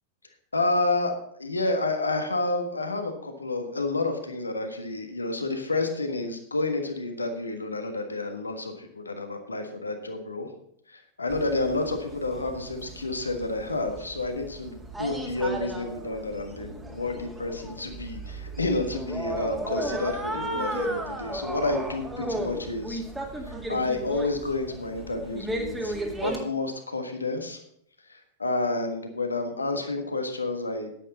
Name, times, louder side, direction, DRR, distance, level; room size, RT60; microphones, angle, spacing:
voice 1, 0.5-1.1 1.4-10.5 10.9-23.0 23.4-25.9 26.2-27.6 28.1-31.0, left 2 dB, 80° left, 6 dB, 1.4 m, -30 dB
sound 1, 11.3-26.4, right 1 dB, 10° right, 2.0 m, -35 dB
9.9 x 9.8 x 4.0 m, 0.69 s
figure-of-eight pair, 90°, 0 cm